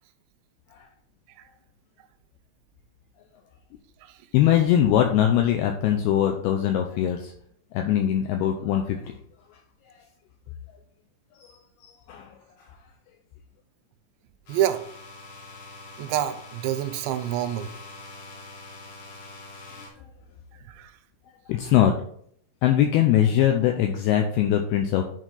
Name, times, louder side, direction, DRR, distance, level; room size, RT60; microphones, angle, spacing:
voice 1, 4.3-7.3 7.7-9.1 11.4-11.6 11.8-12.4 21.5-21.9 22.6-25.0, left 10 dB, 85° left, 4 dB, 2.3 m, -22 dB
sound 1, 14.5-19.9, left 2 dB, 65° left, 3.9 m, -44 dB
voice 2, 14.5-14.8 16.0-17.7 20.7-20.9, right 12 dB, 85° right, 10 dB, 2.8 m, -27 dB
10.5 x 4.5 x 3.8 m, 0.65 s
omnidirectional pair, 5.2 m